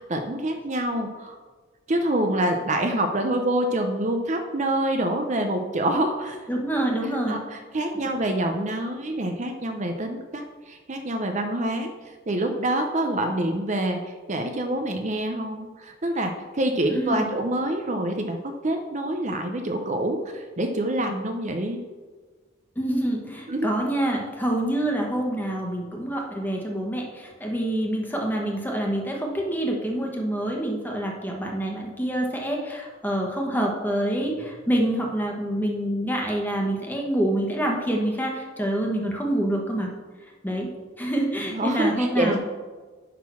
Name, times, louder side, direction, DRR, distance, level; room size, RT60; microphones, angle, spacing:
voice 1, 0.1-1.4 1.9-6.4 7.3-11.9 12.3-21.8 23.5-23.7 41.5-42.4, right 1 dB, 40° right, 5 dB, 0.6 m, -26 dB
voice 2, 6.5-7.4 7.9-8.1 16.9-17.3 22.7-39.9 40.4-40.7 41.0-42.4, right 1 dB, 10° left, 0 dB, 1.3 m, -26 dB
10.5 x 3.8 x 6.1 m, 1.4 s
head